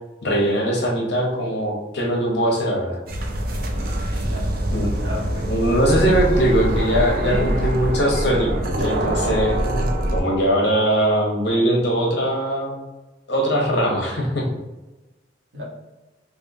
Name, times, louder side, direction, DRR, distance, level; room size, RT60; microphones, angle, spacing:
voice 1, 0.2-3.0 4.7-4.9 5.5-8.5 8.8-9.6 10.1-12.8 13.3-14.4, equal, 65° left, -1 dB, 0.8 m, -21 dB
sound 1, 3.1-10.2, right 1 dB, 50° right, 0.5 m, -24 dB
voice 2, 4.2-4.5 5.0-5.5 7.2-7.8 15.5-15.6, equal, 85° right, -4 dB, 1.2 m, -31 dB
3.4 x 2.6 x 2.6 m, 1.1 s
head